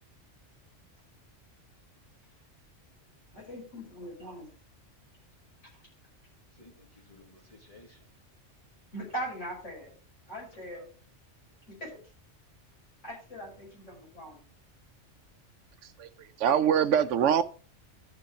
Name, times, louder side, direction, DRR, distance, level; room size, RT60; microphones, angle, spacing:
voice 1, 3.3-4.5 8.9-9.9 10.3-10.9 11.7-12.0 13.0-14.4, right 1 dB, 90° left, 6.3 m, -40 dB
voice 2, 6.5-8.1 10.5-10.8, left 1 dB, 30° left, 2.1 m, -57 dB
voice 3, 15.8-17.4, right 8 dB, 85° right, 1.0 m, -25 dB
13.5 x 5.3 x 4.9 m
omnidirectional pair, 1.2 m